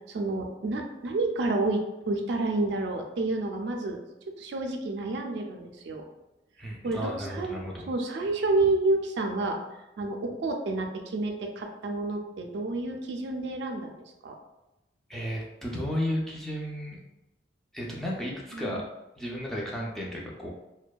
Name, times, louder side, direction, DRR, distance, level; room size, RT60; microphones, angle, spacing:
voice 1, 0.1-4.0 4.4-6.0 6.8-7.6 7.9-9.6 10.0-14.4 18.5-18.8, right 2 dB, 75° right, 3 dB, 0.4 m, -29 dB
voice 2, 6.6-7.9 15.1-17.0 17.7-18.8 19.2-20.5, equal, ahead, -4 dB, 0.3 m, -33 dB
2.5 x 2.2 x 2.2 m, 0.96 s
head